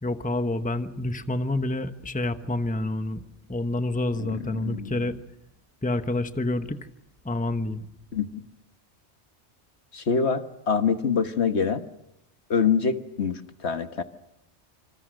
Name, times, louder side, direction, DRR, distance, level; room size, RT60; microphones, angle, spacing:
voice 1, 0.0-3.2 3.5-5.2 5.8-6.9 7.2-7.9, left 2 dB, 5° left, 9 dB, 1.0 m, -28 dB
voice 2, 4.2-5.1 8.1-8.4 9.9-11.8 12.5-14.0, left 6 dB, 65° left, 9 dB, 1.6 m, -25 dB
27.0 x 27.0 x 6.5 m, 0.81 s
omnidirectional pair, 1.2 m